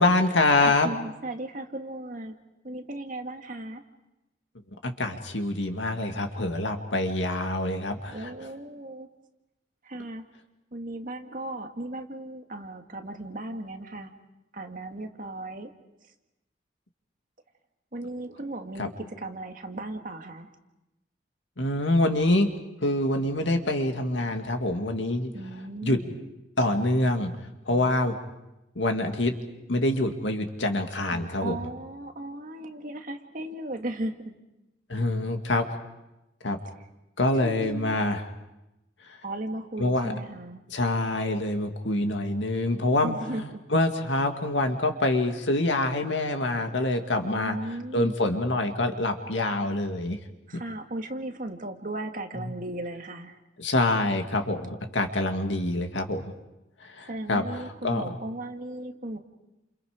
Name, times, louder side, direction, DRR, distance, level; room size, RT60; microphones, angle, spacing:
voice 1, 0.0-0.9 4.8-8.3 18.8-18.9 21.6-22.5 22.8-25.3 25.8-26.0 26.6-27.3 27.7-28.2 28.8-29.3 29.7-31.7 34.9-35.7 36.4-36.6 37.2-38.2 39.8-40.1 40.7-47.6 47.9-50.2 52.3-52.5 53.6-56.3 57.0-58.0, left 2 dB, 90° left, 5 dB, 2.2 m, -26 dB
voice 2, 0.6-2.3 2.6-3.8 8.1-9.1 9.8-10.2 10.7-14.1 14.5-15.7 17.9-20.5 25.3-26.2 31.1-34.4 37.4-38.0 39.2-40.7 43.0-43.6 47.3-48.1 50.5-53.4 57.1-59.2, right 1 dB, 50° right, 4 dB, 1.9 m, -36 dB
29.5 x 28.0 x 5.1 m, 0.96 s
head